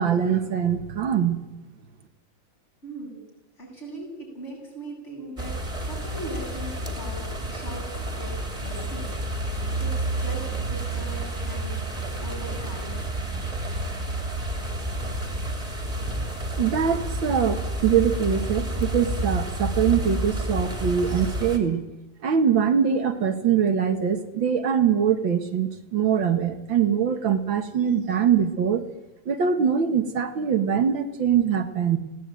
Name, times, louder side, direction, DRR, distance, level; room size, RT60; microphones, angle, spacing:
voice 1, 0.0-1.4 16.6-21.9 22.2-28.8 29.3-32.0, right 7 dB, 85° right, 8 dB, 2.4 m, -23 dB
voice 2, 2.8-3.2 3.6-7.9 8.2-11.9 12.2-13.0, right 1 dB, 35° left, -1 dB, 8.5 m, -40 dB
sound 1, 5.4-21.6, right 1 dB, 20° right, 3.2 m, -30 dB
20.0 x 18.0 x 9.2 m, 0.96 s
omnidirectional pair, 2.1 m